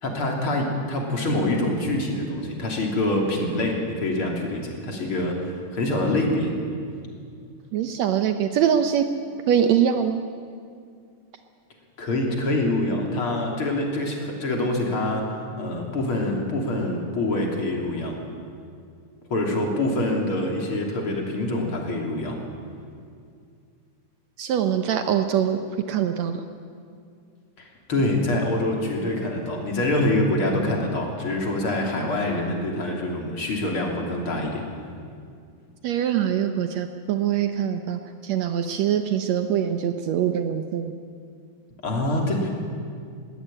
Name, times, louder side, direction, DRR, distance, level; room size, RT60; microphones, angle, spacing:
voice 1, 0.0-6.5 12.0-18.2 19.3-22.4 27.6-34.6 41.8-42.5, left 1 dB, 45° left, 0 dB, 3.8 m, -25 dB
voice 2, 7.7-9.1 9.5-10.2 24.4-25.6 25.9-26.4 35.8-40.9, right 9 dB, 70° right, 7 dB, 2.0 m, -23 dB
21.5 x 16.5 x 8.8 m, 2.3 s
omnidirectional pair, 3.4 m